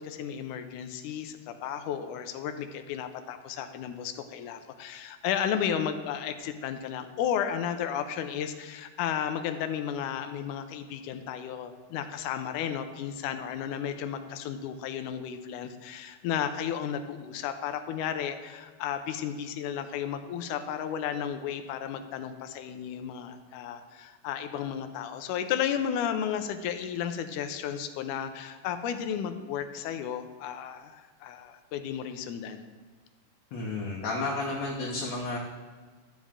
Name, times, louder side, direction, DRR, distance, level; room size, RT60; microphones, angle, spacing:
voice 1, 0.0-32.7, left 8 dB, 80° left, 8 dB, 2.0 m, -33 dB
voice 2, 33.5-35.4, left 3 dB, 65° left, -3 dB, 2.1 m, -32 dB
13.0 x 7.2 x 3.6 m, 1.4 s
omnidirectional pair, 3.8 m